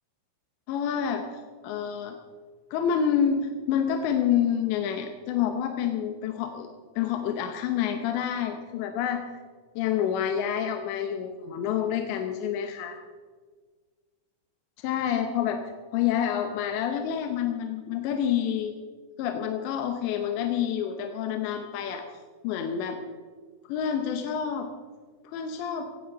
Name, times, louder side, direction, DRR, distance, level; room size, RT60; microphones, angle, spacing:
voice 1, 0.7-1.3 1.6-2.2 2.7-6.7 7.0-9.2 9.8-13.0 14.8-15.6 15.9-18.7 19.2-22.0 22.4-23.0 23.7-24.7 25.2-25.9, left 8 dB, 75° left, 5 dB, 3.0 m, -28 dB
17.0 x 17.0 x 3.9 m, 1.5 s
omnidirectional pair, 5.5 m